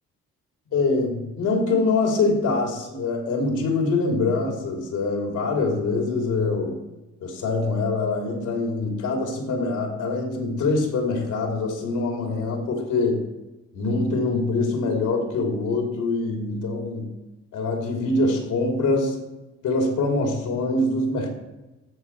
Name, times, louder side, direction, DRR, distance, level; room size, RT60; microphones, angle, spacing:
voice 1, 0.7-6.8 7.2-13.3 13.7-17.1 17.5-19.2 19.6-21.3, left 3 dB, 80° left, 1 dB, 3.1 m, -24 dB
14.5 x 6.0 x 4.8 m, 1.0 s
cardioid pair, 90°, 30 cm